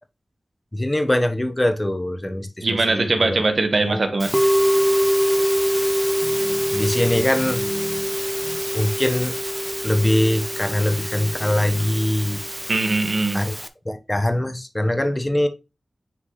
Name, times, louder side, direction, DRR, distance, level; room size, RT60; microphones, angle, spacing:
voice 1, 0.7-3.4 3.8-4.1 6.2-8.1 8.4-9.3 9.8-12.4 13.3-13.5 13.8-15.5, left 1 dB, 25° left, 1.1 m, -23 dB
voice 2, 2.6-4.3 12.7-13.4, right 3 dB, 60° right, 1.3 m, -21 dB
Musical instrument, 4.2-13.7, equal, 15° right, 0.8 m, -24 dB
9.9 x 3.6 x 3.1 m
cardioid pair, 40°, 0 cm